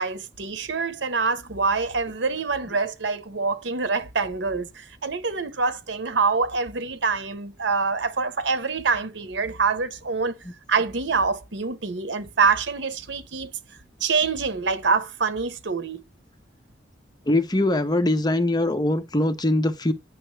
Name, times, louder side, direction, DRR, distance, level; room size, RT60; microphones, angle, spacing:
voice 1, 0.0-10.3 10.7-13.5 14.0-16.0, right 4 dB, 85° right, 1.0 m, -25 dB
voice 2, 17.3-19.9, left 1 dB, 25° left, 0.8 m, -22 dB
8.7 x 6.1 x 3.3 m
head